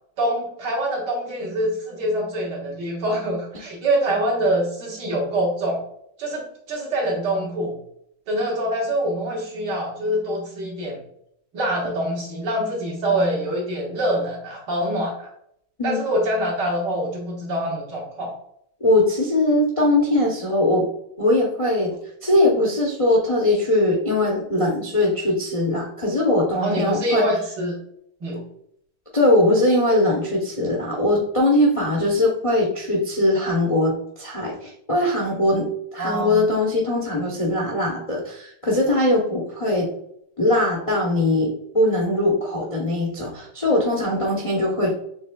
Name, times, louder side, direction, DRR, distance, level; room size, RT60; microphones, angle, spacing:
voice 1, 0.2-5.8 6.2-7.8 8.3-11.0 11.5-15.3 15.8-18.3 26.6-27.7 28.2-28.4 36.0-36.4, right 1 dB, 70° right, -2 dB, 2.0 m, -25 dB
voice 2, 18.8-20.9 21.2-21.9 22.2-27.3 28.3-28.4 29.1-39.9 40.4-44.9, left 1 dB, 45° left, -2 dB, 0.4 m, -21 dB
6.9 x 3.2 x 2.2 m, 0.72 s
omnidirectional pair, 2.0 m